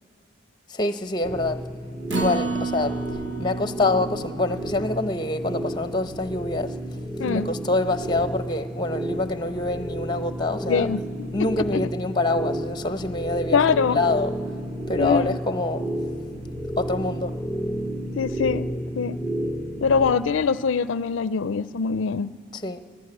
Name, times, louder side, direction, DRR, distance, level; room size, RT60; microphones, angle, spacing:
voice 1, 0.7-1.7 2.1-3.0 3.4-6.8 7.3-10.9 11.3-14.3 14.9-15.9 16.8-17.4 22.5-22.8, left 2 dB, 20° left, 0.7 m, -26 dB
sound 1, 1.2-20.1, right 1 dB, 30° right, 3.0 m, -32 dB
Acoustic guitar, 2.1-8.4 8.8-8.9 9.3-9.4, right 3 dB, 65° right, 1.2 m, -33 dB
voice 2, 10.7-11.0 11.6-11.9 13.5-14.0 15.0-15.4 18.2-18.7 19.0-19.2 19.8-22.3, left 5 dB, 75° left, 0.4 m, -23 dB
23.5 x 14.5 x 9.8 m
head